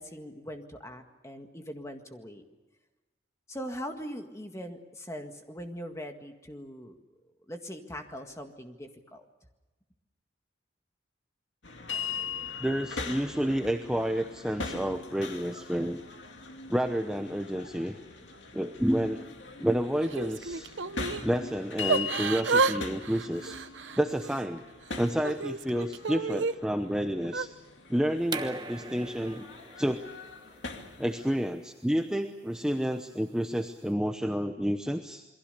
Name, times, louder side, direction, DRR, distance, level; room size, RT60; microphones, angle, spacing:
voice 1, 0.0-2.4 3.5-7.0 7.5-9.2, equal, 15° left, 5 dB, 1.8 m, -41 dB
sound 1, 11.6-31.3, left 4 dB, 70° left, 2.4 m, -41 dB
voice 2, 12.6-16.0 16.7-18.0 18.5-19.3 19.6-20.7 21.2-23.6 24.0-24.6 25.0-27.5 27.9-29.5 29.8-30.0 31.0-35.3, equal, 5° right, 5 dB, 0.8 m, -30 dB
Yell / Crying sobbing, 20.0-21.3 21.9-22.8 23.0-24.4 24.9-26.5 27.2-27.5, right 4 dB, 75° right, 0.8 m, -30 dB
sound 2, 28.2-33.8, right 3 dB, 20° right, 1.1 m, -43 dB
28.0 x 22.5 x 6.8 m, 1.1 s
head